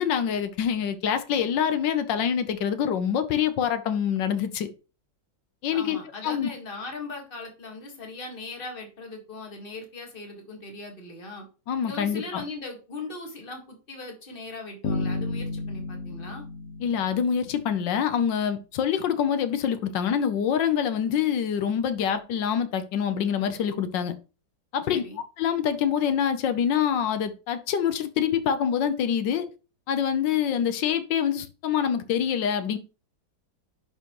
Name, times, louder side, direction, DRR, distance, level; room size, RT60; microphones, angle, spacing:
voice 1, 0.0-4.7 5.6-6.5 11.7-12.4 16.8-24.1 24.7-25.0 25.4-29.5 29.9-32.8, left 8 dB, 75° left, 1.4 m, -25 dB
voice 2, 5.7-11.4 11.9-16.4 24.9-25.2, left 3 dB, 30° left, 1.8 m, -39 dB
sound 1, 14.8-17.9, left 3 dB, 55° left, 1.0 m, -32 dB
10.5 x 4.4 x 3.0 m
omnidirectional pair, 2.1 m